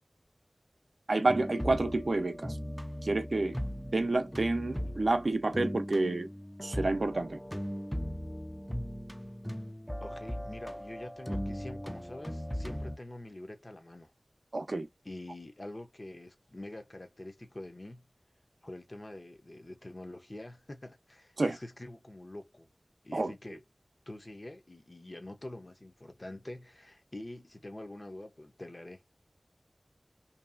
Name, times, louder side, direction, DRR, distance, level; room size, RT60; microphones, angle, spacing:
voice 1, 1.1-2.6 3.0-3.6 3.9-6.3 6.6-7.4 14.5-14.9 21.4-21.6 23.1-23.3, right 2 dB, 75° right, 0.5 m, -29 dB
sound 1, 1.3-13.0, equal, ahead, 0.3 m, -38 dB
voice 2, 10.0-14.1 15.0-18.0 18.6-22.7 23.0-23.6 24.1-29.0, left 1 dB, 45° left, 0.6 m, -46 dB
2.7 x 2.3 x 2.4 m
wide cardioid pair, 60°, 0 cm